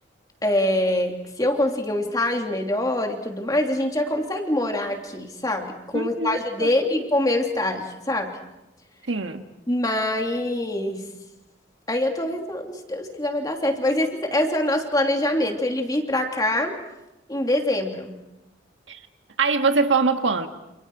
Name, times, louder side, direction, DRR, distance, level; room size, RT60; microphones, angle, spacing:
voice 1, 0.4-8.3 9.7-11.0 11.9-16.8 17.3-18.1, left 1 dB, 20° left, 2 dB, 3.0 m, -24 dB
voice 2, 5.9-6.7 9.1-9.4 18.9-19.0 19.4-20.5, right 4 dB, 80° right, 6 dB, 1.7 m, -23 dB
29.5 x 28.5 x 4.9 m, 0.93 s
head